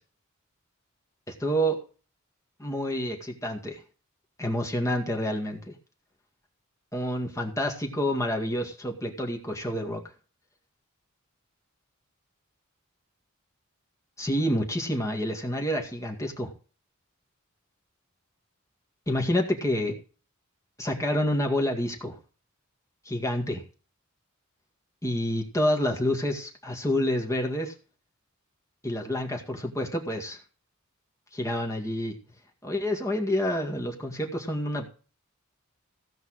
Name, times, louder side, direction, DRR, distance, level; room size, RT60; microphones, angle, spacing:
voice 1, 1.3-1.8 2.6-3.8 4.4-5.7 6.9-10.0 14.2-16.5 19.1-19.9 20.8-22.2 23.1-23.6 25.0-27.7 28.8-30.4 31.3-32.2 32.6-34.9, equal, 15° left, 1 dB, 2.0 m, -28 dB
16.0 x 5.4 x 6.5 m, 0.38 s
head